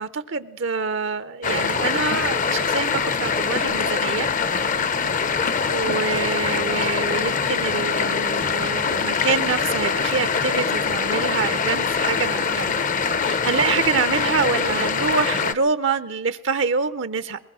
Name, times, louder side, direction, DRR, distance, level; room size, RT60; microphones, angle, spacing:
voice 1, 0.0-4.3 5.7-12.8 13.2-17.4, right 5 dB, 65° right, 13 dB, 0.6 m, -26 dB
sound 1, 1.4-15.5, left 5 dB, 40° left, 0.7 m, -23 dB
22.0 x 20.0 x 6.2 m, 1.0 s
head